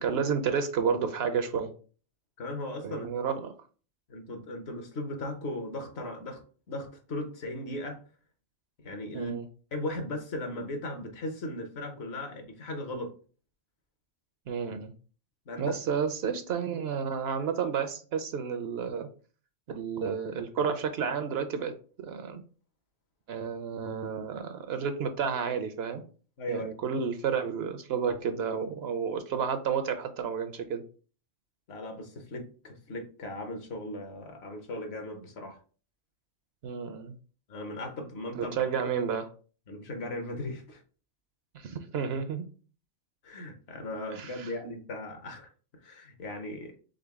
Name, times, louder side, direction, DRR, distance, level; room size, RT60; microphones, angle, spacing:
voice 1, 0.0-1.7 2.8-3.5 9.1-9.4 14.5-14.9 15.6-19.1 19.7-22.4 23.3-26.0 26.5-30.8 36.6-37.1 38.4-39.3 41.5-42.4 44.1-44.5, right 6 dB, 65° right, 0.8 m, -31 dB
voice 2, 2.4-3.1 4.1-6.4 6.7-8.0 8.8-9.4 9.7-13.1 15.5-15.7 26.4-26.7 31.7-35.6 37.5-38.6 39.7-40.8 43.2-45.5 45.8-46.7, left 1 dB, 65° left, 1.1 m, -37 dB
3.9 x 3.7 x 3.5 m
omnidirectional pair, 1.2 m